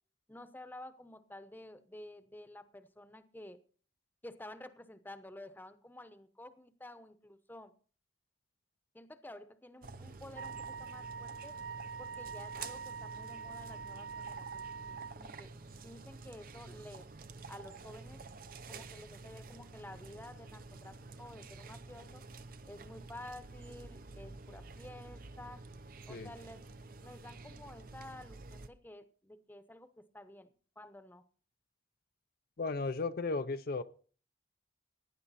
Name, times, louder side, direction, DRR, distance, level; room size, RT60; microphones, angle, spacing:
voice 1, 0.3-3.6 4.2-7.7 8.9-11.6 12.0-17.1 17.5-18.2 18.7-22.2 22.7-25.6 26.1-26.6 27.0-31.2, left 1 dB, 10° left, 0.9 m, -51 dB
sound 1, 9.8-28.7, right 3 dB, 55° right, 0.8 m, -50 dB
Wind instrument woodwind instrument, 10.3-15.2, right 6 dB, 85° right, 0.9 m, -44 dB
voice 2, 32.6-33.8, left 3 dB, 55° left, 0.6 m, -35 dB
16.0 x 10.0 x 4.1 m
head